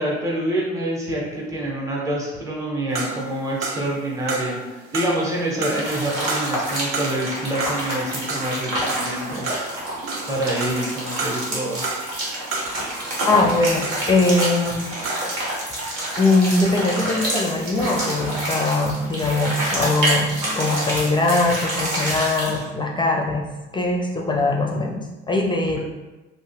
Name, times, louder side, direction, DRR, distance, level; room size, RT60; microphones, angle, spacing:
voice 1, 0.0-9.6 10.3-12.0, right 1 dB, 10° right, -4 dB, 0.9 m, -26 dB
sound 1, 2.9-14.8 15.0-15.4, right 3 dB, 40° right, 0.6 m, -31 dB
sound 2, 5.7-22.6, right 1 dB, 65° right, 1.3 m, -27 dB
voice 2, 13.2-14.8 15.8-23.4 23.7-25.8, left 2 dB, 15° left, -1 dB, 0.5 m, -21 dB
2.9 x 2.1 x 3.4 m, 1.1 s
hypercardioid pair, 60°, 34 cm